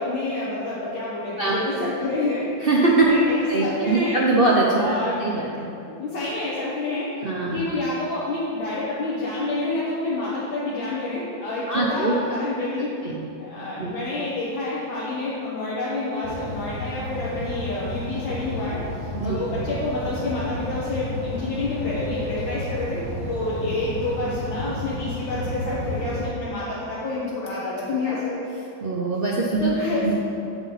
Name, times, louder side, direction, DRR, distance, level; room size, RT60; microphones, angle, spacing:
voice 1, 0.0-2.5 3.0-4.2 4.7-5.6 6.0-12.9 13.5-18.8 19.2-28.3 29.6-30.1, left 2 dB, 85° left, -8 dB, 2.0 m, -28 dB
voice 2, 1.4-1.9 2.6-3.1 3.5-4.9 5.2-5.7 7.2-7.6 11.7-12.1 13.0-13.2 13.8-13.9 19.1-19.4 28.8-29.7 30.0-30.1, right 3 dB, 75° right, -4 dB, 0.5 m, -22 dB
sound 1, 16.2-26.3, left 1 dB, 30° left, 1.1 m, -32 dB
8.3 x 7.1 x 4.0 m, 2.7 s
omnidirectional pair, 2.1 m